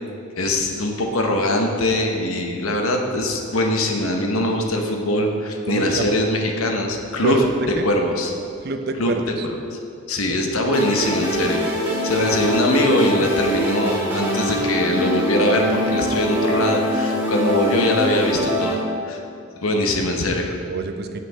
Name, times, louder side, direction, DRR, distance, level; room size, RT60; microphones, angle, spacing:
voice 1, 0.4-7.5 7.8-8.3 9.0-9.1 9.7-9.8 10.1-18.8 19.1-19.2 19.6-20.6, left 1 dB, 85° left, 2 dB, 1.0 m, -22 dB
voice 2, 5.7-6.1 7.2-7.9 8.6-9.5 10.3-10.4 10.6-10.8 20.7-21.2, right 3 dB, 50° right, 7 dB, 0.5 m, -26 dB
sound 1, 10.7-18.7, equal, 10° right, 2.0 m, -23 dB
7.8 x 6.4 x 4.6 m, 2.6 s
head